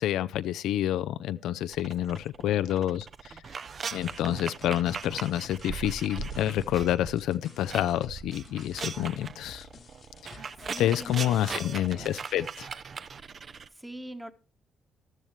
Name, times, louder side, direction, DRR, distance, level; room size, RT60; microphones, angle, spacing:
voice 1, 0.0-3.1 3.9-9.7 10.2-10.4 10.8-12.7, left 12 dB, 85° left, 0.5 m, -28 dB
sound 1, 1.7-7.1 7.4-13.7, right 5 dB, 45° right, 0.7 m, -39 dB
voice 2, 2.4-3.0 3.3-3.4 10.3-12.1 13.4-14.3, right 1 dB, 10° right, 1.3 m, -45 dB
sound 2, 3.9-12.1, left 7 dB, 50° left, 1.1 m, -51 dB
14.0 x 12.5 x 3.2 m
cardioid pair, 90°, 0 cm